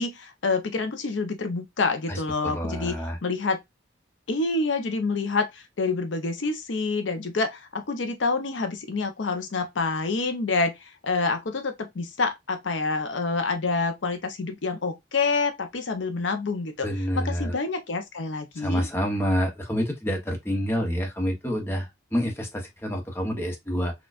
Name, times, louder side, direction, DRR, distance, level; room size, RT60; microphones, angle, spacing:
voice 1, 0.0-3.6 4.3-16.9 17.1-18.9, left 3 dB, 80° left, 0.6 m, -27 dB
voice 2, 2.1-3.2 16.8-17.5 18.6-23.9, equal, 15° left, 0.8 m, -28 dB
4.3 x 2.3 x 2.4 m
head